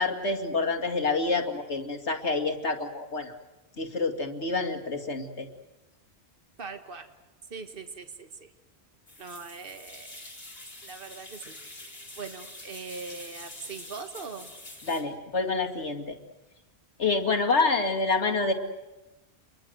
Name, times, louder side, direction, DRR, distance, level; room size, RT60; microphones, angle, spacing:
voice 1, 0.0-3.3 3.8-5.5 14.9-16.2 17.0-18.5, left 3 dB, 80° left, 4 dB, 2.6 m, -27 dB
voice 2, 6.6-7.1 7.5-8.5 9.2-10.1 10.8-14.5, right 4 dB, 55° right, 6 dB, 1.8 m, -41 dB
sound 1, 9.1-15.0, left 1 dB, 60° left, 4.6 m, -45 dB
29.0 x 22.5 x 7.9 m, 1.1 s
omnidirectional pair, 1.1 m